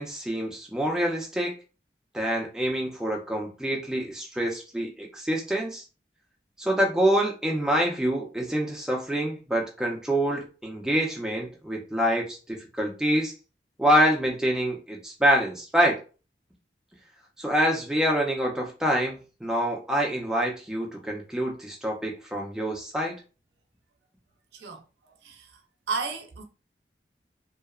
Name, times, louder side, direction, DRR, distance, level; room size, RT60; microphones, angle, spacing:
voice 1, 0.0-1.5 2.1-5.8 6.6-13.3 13.8-16.0 17.4-23.2, equal, 5° right, 0.5 m, -26 dB
voice 2, 24.5-25.6 25.9-26.4, right 4 dB, 75° right, 0.5 m, -34 dB
2.7 x 2.0 x 2.3 m
head